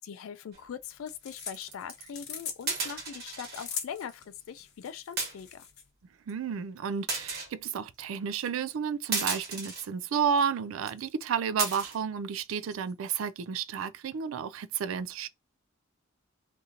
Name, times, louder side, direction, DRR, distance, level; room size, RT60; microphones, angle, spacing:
voice 1, 0.0-5.7, left 7 dB, 85° left, 0.3 m, -41 dB
sound 1, 0.5-0.7 1.4-2.1 2.7-3.7 4.0-4.1 4.4-4.6 5.2-5.7 6.3-6.4 7.1-7.5 8.4-8.5 9.1-9.8 10.4-10.5 10.9-11.0 11.6-12.0 12.5-12.9, right 4 dB, 50° right, 1.3 m, -34 dB
sound 2, 0.8-5.9, left 7 dB, 55° left, 0.8 m, -42 dB
voice 2, 6.3-15.3, right 7 dB, 80° right, 0.4 m, -31 dB
2.8 x 2.6 x 3.7 m
head